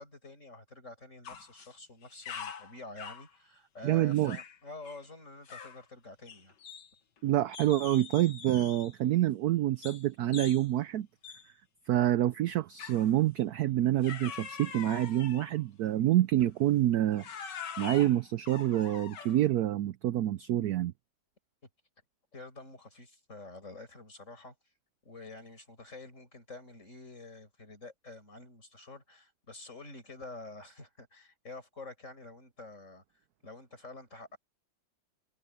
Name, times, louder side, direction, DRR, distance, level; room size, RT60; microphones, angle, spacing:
voice 1, 0.0-6.5 22.3-24.5 25.0-33.0 33.4-34.4, left 2 dB, 40° left, 6.3 m, -48 dB
sound 1, 1.2-1.7 2.0-3.3 4.1-4.6 4.8-5.0 5.4-5.8 6.3-7.2 7.5-9.0 9.8-10.0 10.3-10.7 11.2-11.5 12.8-13.1 14.0-15.6 16.4-16.6 17.1-19.5, left 7 dB, 65° left, 2.1 m, -44 dB
voice 2, 3.8-4.4 7.2-11.1 11.9-17.2 17.8-20.9, right 13 dB, 75° right, 0.9 m, -27 dB
omnidirectional pair, 2.1 m